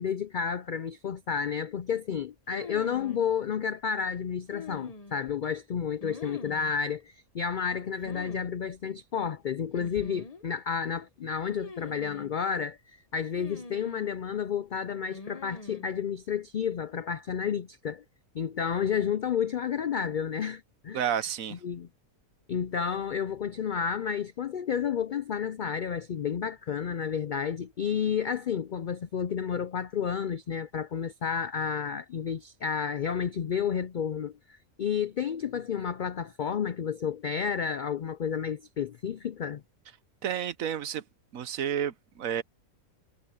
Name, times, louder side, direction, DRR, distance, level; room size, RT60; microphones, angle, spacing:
voice 1, 0.0-18.0 18.3-21.1 21.5-21.9 22.5-39.6, left 7 dB, 70° left, 0.4 m, -31 dB
sound 1, 2.5-3.2 4.5-5.3 6.0-6.7 8.0-8.5 8.7-8.8 9.7-10.4 11.6-12.3 13.4-14.1 15.1-15.9, left 3 dB, 30° left, 0.9 m, -43 dB
voice 2, 20.9-21.6 40.2-41.0 41.3-42.4, right 9 dB, 75° right, 1.3 m, -30 dB
omnidirectional pair, 1.4 m